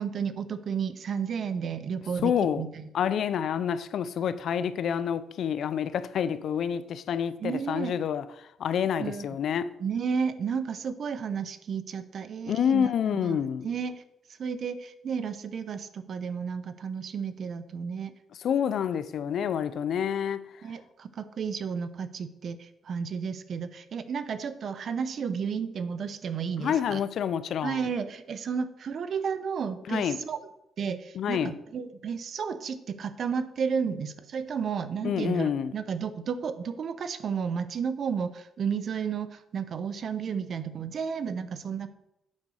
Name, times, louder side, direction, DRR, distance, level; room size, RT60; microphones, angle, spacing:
voice 1, 0.0-2.9 7.4-7.9 9.0-9.3 9.8-14.0 14.4-18.1 20.6-27.0 27.6-30.4 30.8-41.9, right 6 dB, 55° right, 0.8 m, -32 dB
voice 2, 2.2-2.6 2.9-9.7 12.5-13.7 18.4-20.4 26.6-27.9 29.9-30.2 31.1-31.5 35.0-35.7, left 8 dB, 65° left, 0.5 m, -28 dB
8.6 x 5.2 x 6.4 m
cardioid pair, 90°, 0 cm